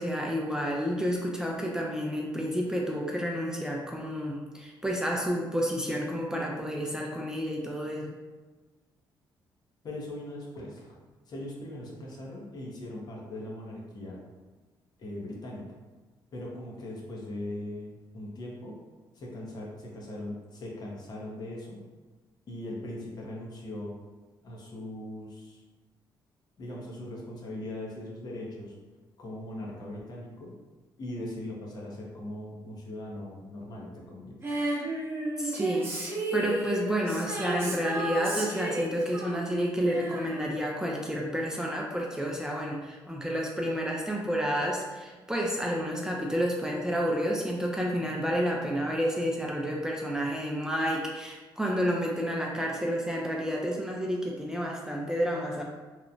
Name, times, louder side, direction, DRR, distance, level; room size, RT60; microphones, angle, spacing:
voice 1, 0.0-8.1 35.4-55.6, equal, 5° right, -2 dB, 0.4 m, -30 dB
voice 2, 9.8-11.0 11.3-14.2 15.0-15.8 16.3-18.8 19.1-21.8 22.5-23.9 24.4-25.6 26.6-28.7 29.2-30.5 31.0-34.4, left 1 dB, 50° left, -3 dB, 0.7 m, -40 dB
Female singing, 34.4-41.0 41.3-41.4, right 2 dB, 30° right, 0.8 m, -33 dB
2.9 x 2.1 x 2.5 m, 1.3 s
cardioid pair, 85°, 8 cm